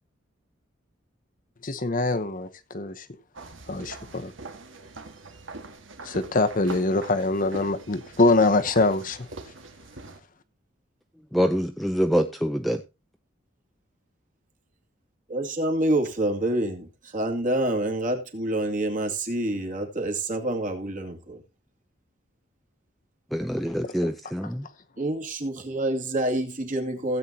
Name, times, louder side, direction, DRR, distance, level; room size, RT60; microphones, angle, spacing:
voice 1, 1.6-2.5 2.7-3.0 3.7-4.3 6.0-9.2, left 2 dB, 45° left, 1.0 m, -23 dB
sound 1, 3.3-10.2, right 3 dB, 85° right, 1.8 m, -43 dB
voice 2, 11.3-12.8 23.3-24.7, equal, ahead, 0.6 m, -25 dB
voice 3, 15.3-21.4 25.0-27.2, right 1 dB, 45° right, 2.3 m, -27 dB
16.5 x 8.2 x 2.8 m
head